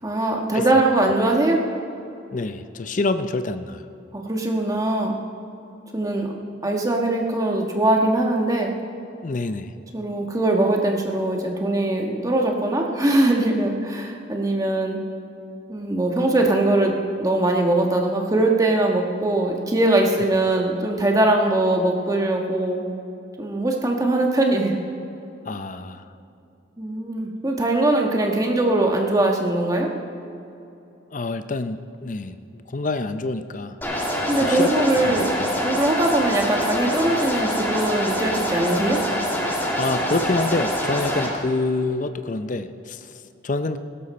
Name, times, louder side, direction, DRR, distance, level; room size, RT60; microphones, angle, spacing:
voice 1, 0.0-1.6 4.1-5.1 5.9-6.3 6.6-8.7 9.9-15.0 15.7-16.9 17.2-22.8 23.4-24.7 26.8-29.9 34.3-35.3 35.6-39.0, right 2 dB, 20° right, 1 dB, 1.4 m, -21 dB
voice 2, 2.3-3.8 9.2-9.7 25.5-26.0 31.1-33.8 34.4-35.5 39.8-43.8, left 3 dB, 40° left, 10 dB, 0.6 m, -27 dB
sound 1, 33.8-41.3, equal, 10° left, 1.9 m, -25 dB
16.5 x 12.5 x 4.3 m, 2.8 s
head